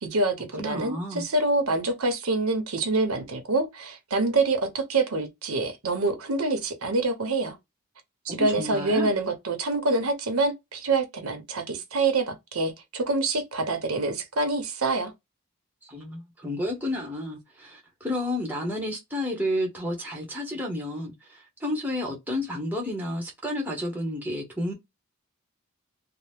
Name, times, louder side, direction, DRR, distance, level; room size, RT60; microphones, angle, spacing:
voice 1, 0.0-7.6 8.3-15.1, right 3 dB, 80° right, 0.8 m, -26 dB
voice 2, 0.6-1.2 8.3-9.1 15.9-24.7, left 1 dB, 10° right, 0.8 m, -31 dB
2.8 x 2.0 x 3.3 m
head